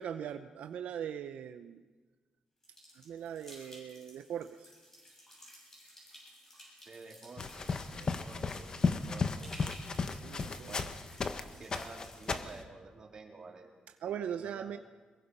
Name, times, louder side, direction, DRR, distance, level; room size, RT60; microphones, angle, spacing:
voice 1, 0.0-1.8 2.9-4.7 10.1-10.8 14.0-14.8, right 9 dB, 80° right, 8 dB, 0.8 m, -40 dB
sound 1, 2.6-12.6, equal, 20° left, 7.1 m, -55 dB
voice 2, 6.9-9.5 10.7-10.9 11.6-13.7 14.1-14.7, right 3 dB, 35° right, 0 dB, 3.5 m, -51 dB
sound 2, 7.4-11.4 11.7-12.6, left 4 dB, 35° left, 1.1 m, -34 dB
23.0 x 21.0 x 5.5 m, 1.4 s
wide cardioid pair, 150°, 2 cm